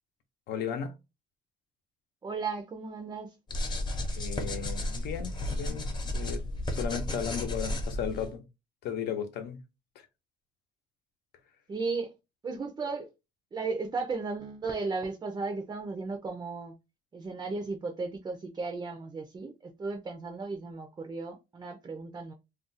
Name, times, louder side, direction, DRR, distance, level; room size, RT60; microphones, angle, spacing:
voice 1, 0.5-0.9 4.1-5.9 6.1-6.4 6.7-8.4 8.8-9.6 10.0-10.1, left 8 dB, 75° left, 0.8 m, -35 dB
voice 2, 2.2-3.3 11.7-12.1 12.4-13.1 13.5-16.7 17.1-22.3, right 4 dB, 25° right, 0.5 m, -35 dB
sound 1, 3.5-8.3, left 1 dB, 25° left, 0.8 m, -33 dB
2.4 x 2.2 x 3.9 m
cardioid pair, 145°, 17 cm